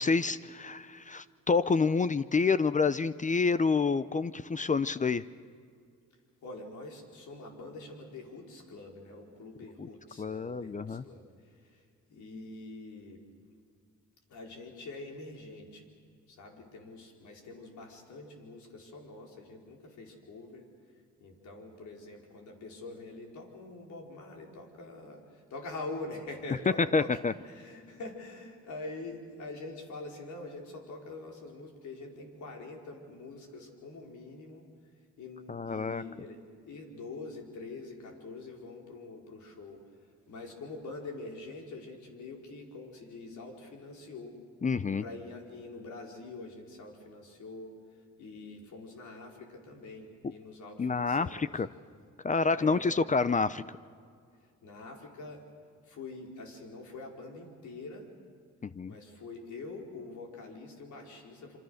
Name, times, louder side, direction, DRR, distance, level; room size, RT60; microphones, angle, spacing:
voice 1, 0.0-5.2 9.8-9.9 10.2-11.0 26.9-27.3 35.5-36.0 44.6-45.0 50.8-51.7 52.2-53.6 58.6-58.9, left 4 dB, 25° left, 15 dB, 0.6 m, -28 dB
voice 2, 6.4-13.2 14.3-15.9 16.3-20.7 21.2-34.7 35.2-44.3 45.0-51.6 52.6-53.0 54.6-55.4 55.8-58.1 58.9-61.6, left 2 dB, 70° left, 1 dB, 4.9 m, -45 dB
27.5 x 25.0 x 6.6 m, 2.2 s
cardioid pair, 90°, 30 cm